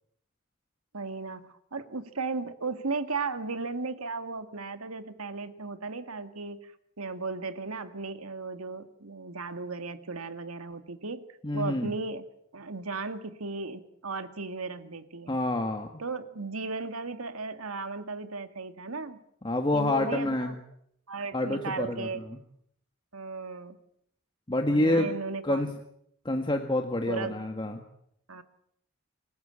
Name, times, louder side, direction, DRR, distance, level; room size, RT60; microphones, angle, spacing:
voice 1, 0.9-6.6 7.0-11.2 11.5-12.2 12.5-15.4 16.0-19.2 19.7-20.6 21.1-22.2 23.1-23.8 24.7-25.7 27.1-27.4 28.3-28.4, right 4 dB, 90° right, 9 dB, 1.9 m, -36 dB
voice 2, 11.4-11.9 15.3-15.9 19.4-20.5 21.3-22.4 24.5-25.1 25.4-25.7 26.2-27.8, left 1 dB, 20° left, 4 dB, 1.6 m, -27 dB
27.0 x 15.5 x 8.8 m, 0.72 s
head